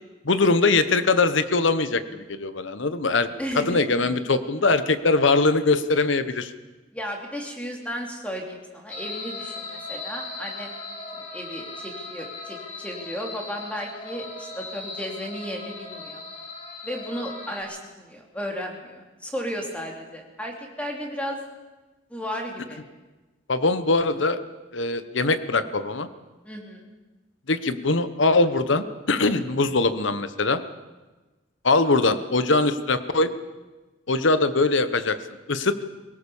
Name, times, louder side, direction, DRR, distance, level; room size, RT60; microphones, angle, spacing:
voice 1, 0.2-3.3 3.6-6.5 23.5-24.4 24.7-26.1 27.5-30.6 31.6-33.3 34.1-35.2 35.5-35.7, left 3 dB, 75° left, 12 dB, 1.1 m, -22 dB
voice 2, 3.4-4.1 6.9-10.7 11.1-16.2 16.8-21.4 22.1-22.8 26.4-26.9, equal, 5° left, 0 dB, 3.1 m, -34 dB
sound 1, 8.9-17.6, left 3 dB, 35° left, 3.5 m, -38 dB
23.0 x 17.0 x 7.1 m, 1.2 s
head